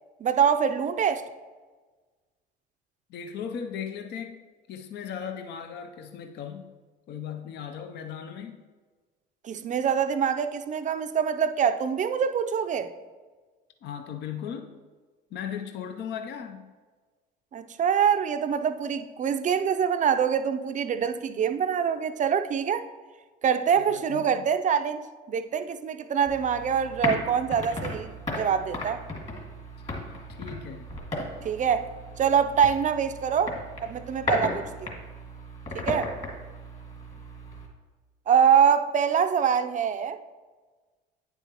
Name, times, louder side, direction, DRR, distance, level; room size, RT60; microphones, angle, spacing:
voice 1, 0.2-1.2 9.4-12.9 17.5-22.8 23.4-28.1 28.4-29.0 31.4-31.9 32.2-33.6 33.8-34.9 35.7-36.1 38.3-40.2, right 7 dB, 35° right, 9 dB, 0.5 m, -24 dB
voice 2, 3.1-4.4 4.7-6.7 7.1-8.6 13.8-14.7 15.3-16.7 23.8-24.5 29.9-30.9, left 7 dB, 55° left, 6 dB, 0.6 m, -37 dB
sound 1, 26.3-37.7, left 1 dB, 30° left, 2.1 m, -35 dB
9.2 x 6.9 x 3.0 m, 1.4 s
supercardioid pair, 90°, 21 cm